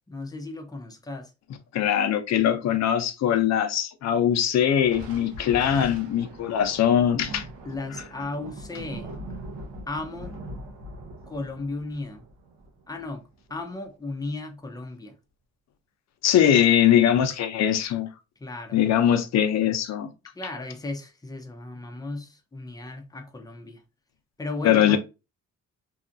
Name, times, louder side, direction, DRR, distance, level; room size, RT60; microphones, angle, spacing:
voice 1, 0.1-1.3 7.6-9.2 9.9-10.4 11.3-12.3 12.9-15.1 18.4-18.8 20.3-23.8 24.4-25.0, left 2 dB, 10° left, 0.6 m, -35 dB
voice 2, 1.7-7.4 16.2-18.1 18.7-20.1 24.6-25.0, left 10 dB, 60° left, 0.6 m, -21 dB
Thunder, 4.8-13.6, right 1 dB, 80° right, 0.9 m, -41 dB
2.7 x 2.4 x 2.5 m
cardioid pair, 90°, 30 cm